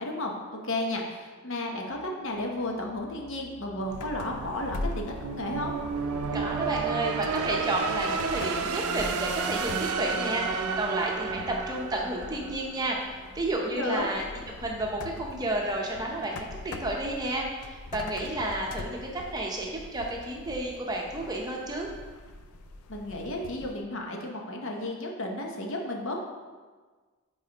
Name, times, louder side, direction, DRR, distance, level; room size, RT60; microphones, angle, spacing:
voice 1, 0.0-5.7 13.7-14.0 22.9-26.2, left 1 dB, 60° left, 1 dB, 0.9 m, -33 dB
sound 1, 2.0-13.0, right 5 dB, 80° right, 0.4 m, -32 dB
sound 2, 3.9-23.8, left 2 dB, 85° left, 0.4 m, -43 dB
voice 2, 6.3-13.0 13.3-14.2 14.6-21.9, right 1 dB, 15° right, -1 dB, 0.7 m, -31 dB
8.4 x 4.1 x 2.9 m, 1.4 s
head